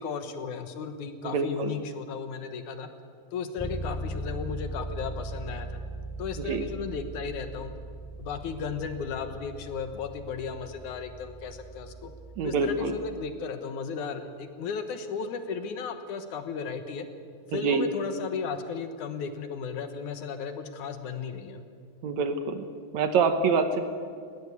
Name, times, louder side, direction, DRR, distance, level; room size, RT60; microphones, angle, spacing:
voice 1, 0.0-2.9 3.3-5.8 6.2-7.7 8.2-12.1 12.4-17.1 17.5-21.6, left 5 dB, 70° left, 8 dB, 2.6 m, -35 dB
voice 2, 1.2-1.7 6.4-6.6 12.4-13.0 17.5-17.9 22.0-22.7 22.9-23.9, right 5 dB, 65° right, 8 dB, 2.2 m, -26 dB
Bass guitar, 3.6-13.4, right 1 dB, ahead, 1.9 m, -39 dB
19.5 x 18.0 x 8.4 m, 2.2 s
omnidirectional pair, 3.8 m